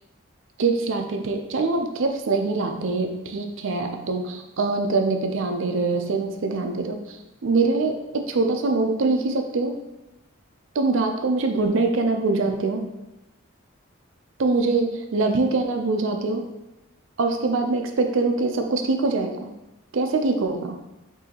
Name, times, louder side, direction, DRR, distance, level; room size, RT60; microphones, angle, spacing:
voice 1, 0.6-9.8 10.8-12.9 14.4-16.5 17.2-19.5 19.9-20.8, right 3 dB, 65° right, 4 dB, 0.5 m, -24 dB
6.3 x 2.7 x 2.9 m, 0.96 s
head